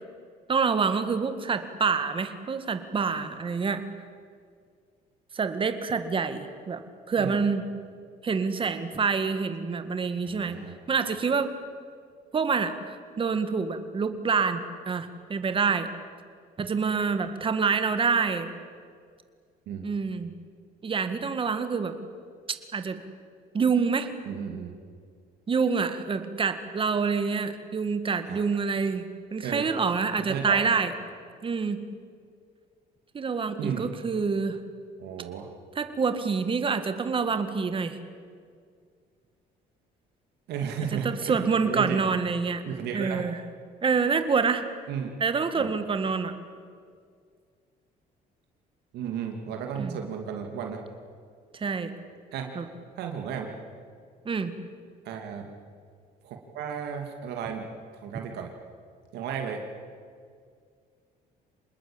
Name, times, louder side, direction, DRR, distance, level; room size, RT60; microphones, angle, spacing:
voice 1, 0.5-3.8 5.3-7.7 8.2-10.6 10.9-11.5 12.3-12.7 13.2-14.6 14.9-15.9 16.6-18.5 19.8-20.3 20.8-21.9 22.7-23.0 23.5-24.1 25.5-30.9 31.4-31.8 33.1-34.6 35.8-38.0 40.9-42.6 42.9-43.4 43.8-44.6 45.2-46.3 49.8-50.0 51.5-51.9 52.6-52.7 54.3-54.5, right 5 dB, 30° right, 9 dB, 1.9 m, -27 dB
voice 2, 10.2-10.7 19.7-19.9 24.3-24.7 28.3-28.4 29.4-29.6 30.2-30.7 33.5-33.8 35.0-35.5 40.5-42.0 42.7-43.2 44.9-45.1 45.5-45.7 48.9-50.9 52.3-52.5 53.0-53.5 55.0-55.5 56.2-57.7 58.0-58.5 59.1-59.6, right 7 dB, 80° right, 3 dB, 2.6 m, -34 dB
26.5 x 20.0 x 8.8 m, 2.1 s
cardioid pair, 110°, 17 cm